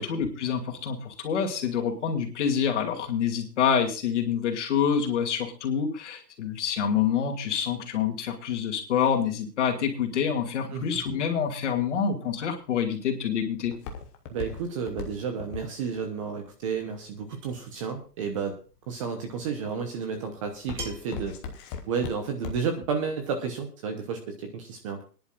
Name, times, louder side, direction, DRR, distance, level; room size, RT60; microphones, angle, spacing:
voice 1, 0.0-13.7, left 7 dB, 45° left, 4 dB, 2.6 m, -27 dB
Walk footsteps, 12.6-17.7 18.3-18.8 19.3-19.6 20.0-22.9 23.2-23.3, left 5 dB, 15° left, 0.9 m, -38 dB
voice 2, 14.3-18.6 18.9-21.4 21.9-25.0, right 6 dB, 20° right, 5 dB, 0.9 m, -31 dB
sound 1, 17.3-17.7 19.2-19.3 20.8-21.3, right 3 dB, 65° right, 3.8 m, -41 dB
23.0 x 10.5 x 2.5 m, 0.35 s
hypercardioid pair, 150°, 49 cm